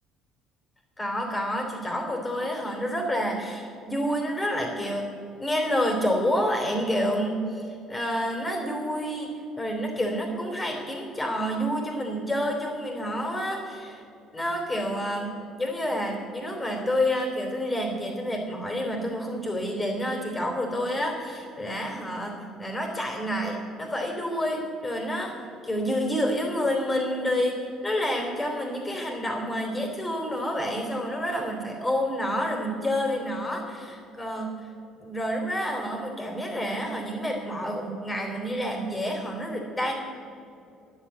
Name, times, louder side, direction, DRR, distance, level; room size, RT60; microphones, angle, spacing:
voice 1, 1.0-5.1 5.4-14.0 14.3-34.6 35.0-39.9, equal, 20° left, 1 dB, 3.2 m, -29 dB
11.0 x 8.5 x 8.0 m, 2.7 s
hypercardioid pair, 55°, 0 cm